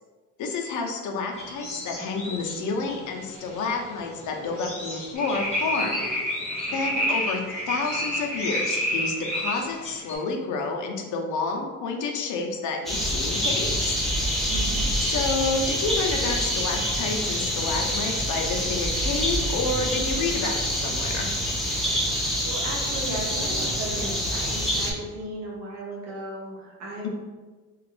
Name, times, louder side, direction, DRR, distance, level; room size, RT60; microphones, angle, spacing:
voice 1, 0.4-6.0 6.7-7.4 7.7-14.0 15.0-21.3, left 4 dB, 65° left, 2 dB, 0.6 m, -29 dB
sound 1, 1.3-10.2, left 2 dB, 20° left, 0.9 m, -40 dB
sound 2, 5.1-9.6 10.1-10.2, equal, 25° right, 1.0 m, -28 dB
sound 3, 12.9-24.9, equal, ahead, 0.3 m, -26 dB
voice 2, 22.1-27.1, right 1 dB, 55° right, -4 dB, 0.8 m, -36 dB
2.9 x 2.4 x 3.1 m, 1.3 s
cardioid pair, 165°, 33 cm